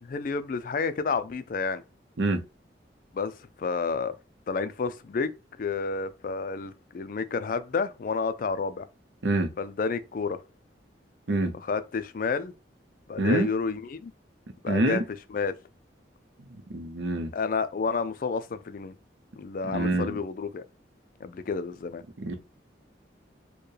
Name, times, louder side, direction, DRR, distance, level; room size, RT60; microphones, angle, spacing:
voice 1, 0.0-1.8 3.1-3.3 3.6-4.2 4.5-5.3 5.6-8.9 9.6-10.4 11.5-12.5 13.1-14.1 14.6-15.0 15.3-15.5 17.3-18.9 19.4-20.6 21.2-22.0, left 4 dB, 50° left, 0.3 m, -30 dB
voice 2, 13.2-13.5 14.7-15.0 16.5-17.3 19.7-20.2 22.2-22.3, right 2 dB, 85° right, 0.7 m, -26 dB
4.5 x 2.2 x 3.2 m
head